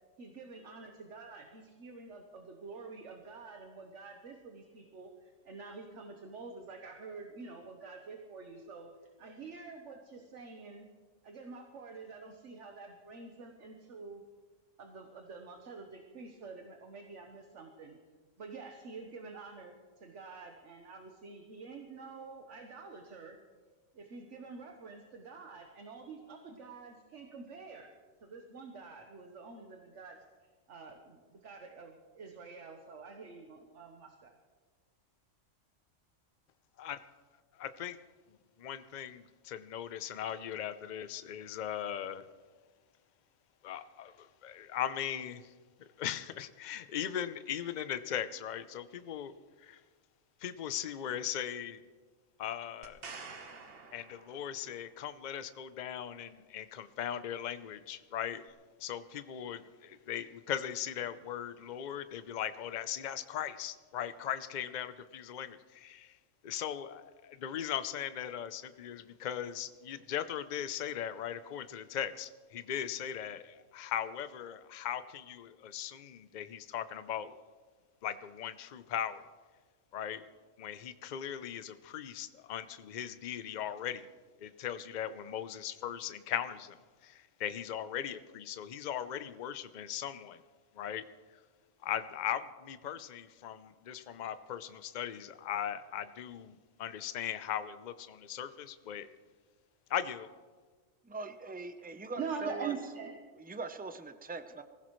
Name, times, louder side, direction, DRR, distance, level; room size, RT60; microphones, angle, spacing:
voice 1, 0.2-8.9 9.2-10.9 11.2-14.2 14.8-18.0 18.4-23.4 23.9-27.9 28.2-30.2 30.7-34.3 101.8-103.1, right 4 dB, 65° right, 3 dB, 1.4 m, -46 dB
voice 2, 37.5-38.0 38.6-42.3 43.6-45.5 46.0-49.8 50.4-51.8 52.4-53.0 53.9-58.5 58.8-66.2 66.4-77.4 78.0-79.2 79.9-80.2 80.6-84.1 84.4-86.8 87.0-90.4 90.7-91.0 91.8-99.1 99.9-100.3, left 10 dB, 45° left, 12 dB, 0.6 m, -39 dB
sound 1, 52.8-54.8 58.5-58.6, right 4 dB, 50° right, 1.3 m, -48 dB
voice 3, 101.0-102.7 103.4-104.6, right 3 dB, 10° right, 9 dB, 0.4 m, -41 dB
24.0 x 15.5 x 3.1 m, 1.4 s
omnidirectional pair, 1.3 m